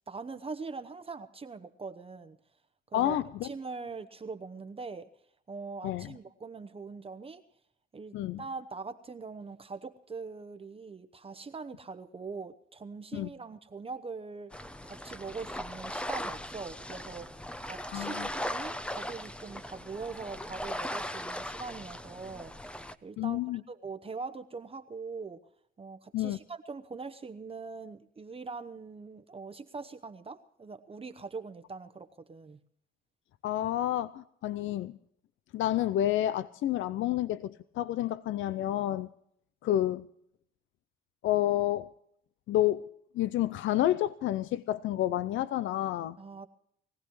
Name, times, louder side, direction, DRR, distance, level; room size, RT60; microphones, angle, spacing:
voice 1, 0.1-2.4 2.9-3.2 3.4-5.1 5.5-7.4 7.9-14.5 14.8-22.6 23.0-23.4 23.7-25.4 25.8-32.6 46.2-46.5, right 4 dB, 30° right, 0.9 m, -42 dB
voice 2, 2.9-3.5 5.8-6.1 8.1-8.4 13.1-13.3 17.9-18.3 23.2-23.6 26.1-26.4 33.4-34.9 35.5-39.1 39.6-40.1 41.2-41.9 42.5-42.9 43.1-46.2, left 13 dB, 75° left, 0.5 m, -29 dB
sound 1, 14.5-22.9, left 1 dB, 5° left, 0.7 m, -39 dB
22.0 x 16.0 x 3.1 m
cardioid pair, 90°, 20 cm